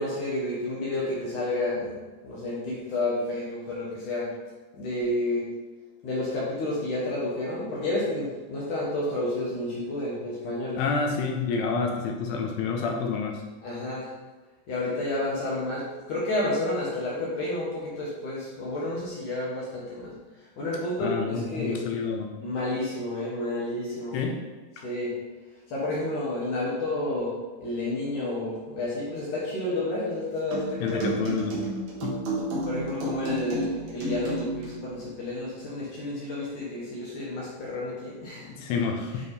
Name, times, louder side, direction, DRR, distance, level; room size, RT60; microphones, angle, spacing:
voice 1, 0.0-2.0 2.2-4.3 4.7-5.5 6.0-10.8 13.6-14.1 14.7-20.1 20.6-21.8 22.4-24.2 24.8-25.1 25.7-27.3 27.6-31.1 32.6-38.5, left 1 dB, 65° left, -6 dB, 2.1 m, -30 dB
voice 2, 10.8-13.4 21.0-22.3 24.1-24.4 24.8-24.9 30.8-31.6 32.0-32.2 38.4-39.3, left 5 dB, 80° left, 1 dB, 2.6 m, -29 dB
sound 1, 30.5-34.8, right 2 dB, 60° right, 1.9 m, -31 dB
9.4 x 3.5 x 4.1 m, 1.2 s
omnidirectional pair, 5.0 m